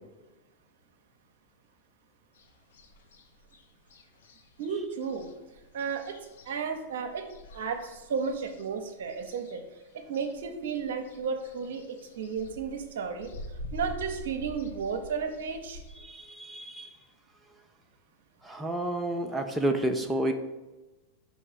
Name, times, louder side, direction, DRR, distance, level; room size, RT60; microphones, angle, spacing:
sound 1, 2.3-16.0, left 1 dB, 60° left, 0.6 m, -47 dB
voice 1, 4.6-5.3 5.7-6.2 6.5-7.3 7.5-9.6 10.1-13.3 13.7-15.8, right 6 dB, 60° right, 6 dB, 0.6 m, -33 dB
voice 2, 16.0-16.9 18.4-20.3, right 1 dB, 10° right, 4 dB, 0.4 m, -30 dB
5.4 x 3.1 x 5.6 m, 1.1 s
figure-of-eight pair, 90°, 0 cm